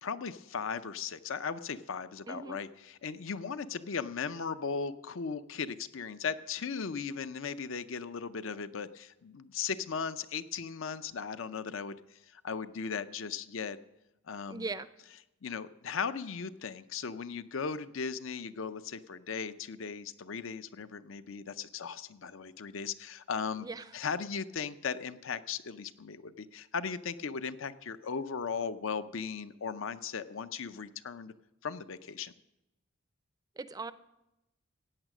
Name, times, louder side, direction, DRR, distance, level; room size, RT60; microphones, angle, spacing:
voice 1, 0.0-13.8 14.3-14.7 15.4-23.7 23.9-31.3 31.6-32.3, left 6 dB, 65° left, 13 dB, 0.6 m, -37 dB
voice 2, 2.3-2.6 14.5-14.9 23.6-23.9 33.6-33.9, right 3 dB, 20° right, 14 dB, 0.4 m, -39 dB
15.5 x 9.1 x 6.1 m, 0.93 s
head